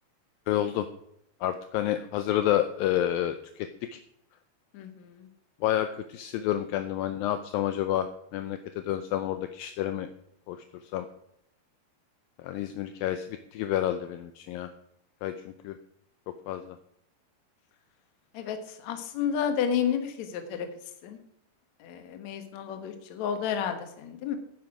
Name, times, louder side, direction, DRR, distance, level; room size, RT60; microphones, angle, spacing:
voice 1, 0.5-0.9 1.4-4.0 5.6-8.1 8.3-10.1 10.5-10.6 10.9-11.1 12.4-13.3 13.5-14.7 15.2-15.8 16.5-16.8, left 12 dB, 80° left, 9 dB, 2.1 m, -29 dB
voice 2, 4.7-5.3 18.3-20.7 21.0-21.2 21.8-24.4, left 8 dB, 60° left, 7 dB, 2.1 m, -31 dB
11.5 x 9.5 x 4.9 m, 0.75 s
omnidirectional pair, 4.6 m